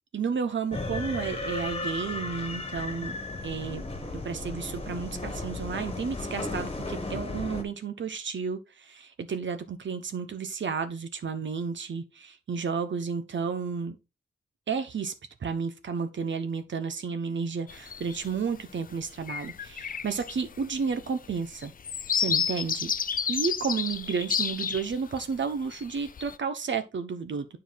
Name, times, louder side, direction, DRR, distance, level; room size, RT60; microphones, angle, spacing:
voice 1, 0.1-3.1 3.4-3.8 4.1-14.0 14.7-15.1 15.4-21.7 22.1-22.9 23.3-27.5, right 5 dB, 70° right, 1.1 m, -32 dB
sound 1, 0.7-7.6, left 2 dB, 30° left, 1.5 m, -35 dB
sound 2, 17.7-18.3 18.8-18.9 19.2-25.2 25.7-26.3, left 7 dB, 45° left, 0.5 m, -31 dB
9.9 x 4.7 x 3.6 m
wide cardioid pair, 140°, 20 cm